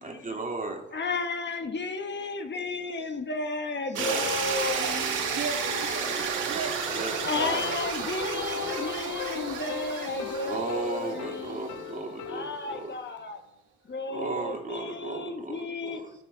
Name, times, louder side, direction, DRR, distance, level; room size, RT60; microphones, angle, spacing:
voice 1, 0.0-0.9 3.9-4.8 6.9-7.7 10.4-12.9 14.1-16.1, right 3 dB, 25° right, 1 dB, 2.5 m, -36 dB
voice 2, 0.9-5.1 6.1-6.2 7.2-11.7 12.2-13.4 13.9-16.0, left 3 dB, 35° left, 6 dB, 1.3 m, -33 dB
sound 1, 3.9-12.0, right 5 dB, 85° right, 2.2 m, -32 dB
voice 3, 4.5-7.0, right 4 dB, 65° right, 1 dB, 2.4 m, -37 dB
sound 2, 6.9-13.0, left 13 dB, 85° left, 0.7 m, -39 dB
13.0 x 6.7 x 4.0 m, 0.81 s
cardioid pair, 90°, 30 cm